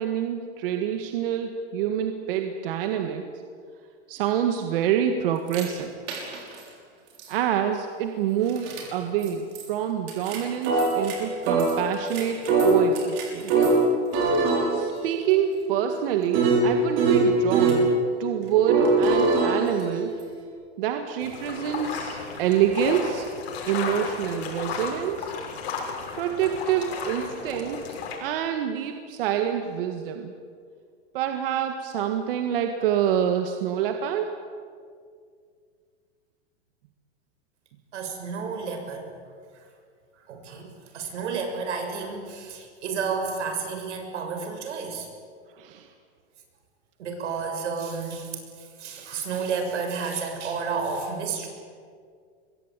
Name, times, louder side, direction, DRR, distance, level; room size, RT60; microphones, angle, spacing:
voice 1, 0.0-3.3 4.1-5.9 7.3-13.5 14.7-17.9 18.2-20.2 20.8-23.3 23.7-25.3 26.1-30.3 31.1-34.4 45.6-45.9, right 9 dB, 50° right, 5 dB, 1.9 m, -26 dB
sound 1, 5.5-5.6 6.1-6.6 7.2-7.3 8.5-8.8 9.2-9.3 9.5-9.7 10.1-11.1 11.5-13.8 14.1-17.8 18.7-20.4, right 3 dB, 35° right, 6.2 m, -23 dB
sound 2, 21.2-28.2, left 5 dB, 60° left, 6.7 m, -34 dB
voice 2, 37.9-39.1 40.3-45.1 47.0-51.5, right 5 dB, 85° right, 5 dB, 7.1 m, -31 dB
25.5 x 22.5 x 9.2 m, 2.1 s
supercardioid pair, 170°, 35 cm